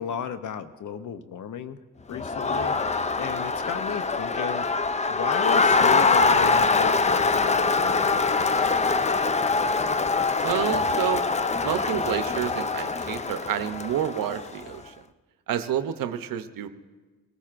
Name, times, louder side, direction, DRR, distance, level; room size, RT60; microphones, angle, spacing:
voice 1, 0.0-1.8 2.1-2.8 3.2-4.7 5.1-8.3, left 7 dB, 65° left, 11 dB, 0.7 m, -34 dB
Crowd, 2.1-14.7, left 4 dB, 20° left, 0.4 m, -24 dB
sound 1, 8.2-9.8, left 3 dB, 85° left, 2.3 m, -45 dB
voice 2, 10.4-11.2 11.6-14.9 15.5-16.7, right 10 dB, 85° right, 9 dB, 0.7 m, -29 dB
22.0 x 15.0 x 2.5 m, 1.3 s
cardioid pair, 90°, 33 cm